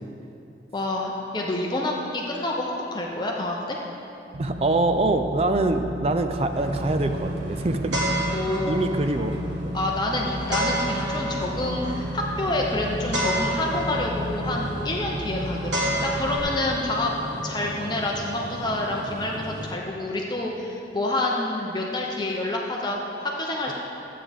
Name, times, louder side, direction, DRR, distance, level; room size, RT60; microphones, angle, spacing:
voice 1, 0.7-3.8 8.3-8.9 9.7-17.1 17.4-23.7, left 2 dB, 25° left, -2 dB, 0.8 m, -28 dB
sound 1, 4.3-16.4, equal, 65° right, 1.0 m, -33 dB
voice 2, 4.4-8.0 8.7-9.4 23.7-23.8, right 2 dB, 35° right, 7 dB, 0.4 m, -24 dB
sound 2, 6.5-19.7, equal, 80° right, 1.5 m, -32 dB
12.5 x 8.6 x 3.6 m, 2.7 s
head